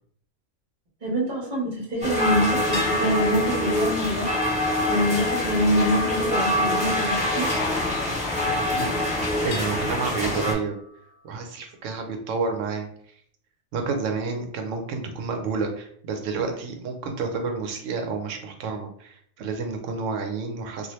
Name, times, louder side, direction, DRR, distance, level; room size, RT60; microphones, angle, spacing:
voice 1, 1.0-4.3 4.9-7.5, equal, 40° right, -4 dB, 1.2 m, -25 dB
sound 1, 2.0-10.5, left 1 dB, 5° right, 0.6 m, -25 dB
sound 2, 2.7-6.4 7.5-9.0 9.5-11.2, left 3 dB, 50° left, 0.4 m, -40 dB
voice 2, 8.5-10.8 11.2-13.1 13.7-20.9, right 4 dB, 80° right, 4 dB, 1.0 m, -30 dB
2.8 x 2.5 x 3.1 m, 0.62 s
omnidirectional pair, 1.3 m